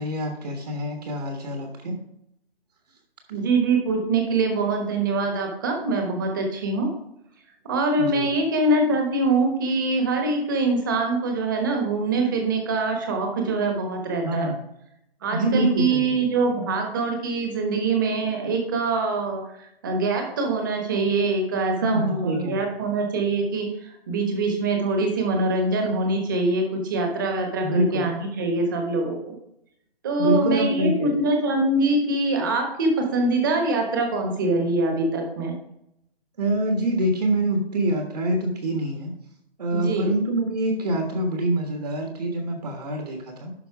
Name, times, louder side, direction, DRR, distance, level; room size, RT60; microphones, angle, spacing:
voice 1, 0.0-2.0 8.0-8.3 14.2-14.6 15.3-16.2 21.8-22.6 27.6-28.0 30.2-31.2 36.4-39.1 39.6-43.5, right 1 dB, 40° right, 3 dB, 1.4 m, -25 dB
voice 2, 3.3-6.9 7.6-14.5 15.2-29.4 30.0-35.5 39.7-40.1, right 3 dB, 20° right, 3 dB, 1.2 m, -24 dB
11.5 x 4.5 x 4.6 m, 0.80 s
hypercardioid pair, 175°, 31 cm